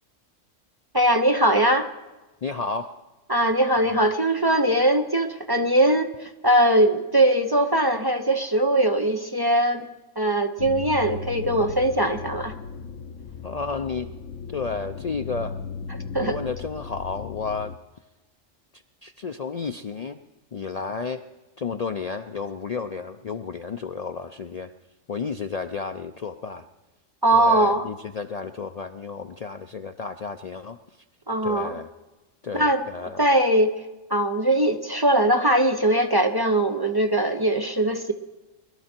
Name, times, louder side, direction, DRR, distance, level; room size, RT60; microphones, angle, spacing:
voice 1, 0.9-1.9 3.3-9.9 10.2-12.5 16.1-16.4 27.2-27.9 31.3-31.8 32.5-32.8 33.2-33.7 34.1-38.1, right 1 dB, 25° right, 4 dB, 0.5 m, -21 dB
voice 2, 2.4-3.0 3.9-4.1 13.4-14.1 14.5-15.6 16.2-17.8 19.0-20.2 20.5-21.3 21.6-24.7 25.1-26.7 27.3-30.8 31.4-31.9 32.4-33.3, left 5 dB, 65° left, 7 dB, 0.4 m, -32 dB
sound 1, 10.6-17.8, left 6 dB, 85° left, 1.2 m, -36 dB
21.0 x 12.0 x 4.4 m, 1.1 s
omnidirectional pair, 1.3 m